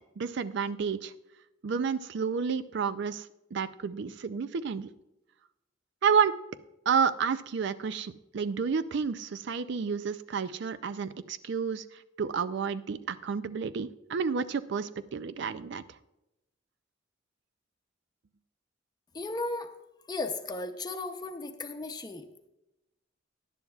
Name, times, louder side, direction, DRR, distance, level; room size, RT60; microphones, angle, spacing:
voice 1, 0.2-1.1 1.6-4.9 6.0-6.4 6.9-15.8, right 6 dB, 65° right, 13 dB, 0.4 m, -30 dB
voice 2, 19.1-19.7 20.1-22.3, left 2 dB, 20° left, 6 dB, 0.7 m, -35 dB
17.5 x 11.0 x 2.4 m, 0.94 s
head